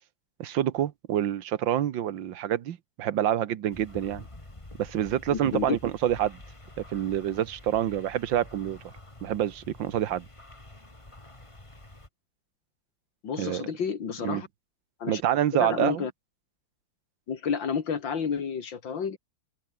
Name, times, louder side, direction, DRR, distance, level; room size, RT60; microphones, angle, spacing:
voice 1, 0.4-4.3 4.8-6.4 6.8-8.8 9.2-10.3 13.4-13.7 14.2-14.4 15.1-16.1, right 11 dB, 80° right, 1.8 m, -27 dB
sound 1, 3.7-12.1, left 2 dB, 15° left, 2.7 m, -48 dB
voice 2, 5.3-5.8 13.2-14.5 15.0-15.2 15.5-16.1 17.3-19.2, left 6 dB, 75° left, 2.9 m, -30 dB
open air
omnidirectional pair, 2.1 m